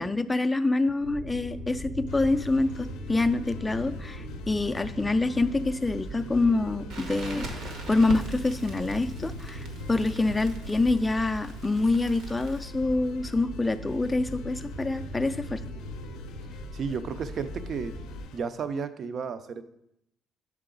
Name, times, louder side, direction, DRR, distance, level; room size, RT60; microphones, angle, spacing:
voice 1, 0.0-7.5 7.9-15.6, left 2 dB, 15° left, 9 dB, 0.3 m, -26 dB
sound 1, 1.0-18.2, equal, 90° right, 2.7 m, -39 dB
sound 2, 2.1-18.4, left 6 dB, 85° left, 0.4 m, -49 dB
Crackle, 6.9-12.7, right 2 dB, 70° right, 1.1 m, -42 dB
voice 2, 16.7-17.9 18.3-19.6, right 5 dB, 45° right, 11 dB, 0.4 m, -32 dB
6.6 x 4.8 x 3.8 m, 0.79 s
cardioid pair, 125°, 0 cm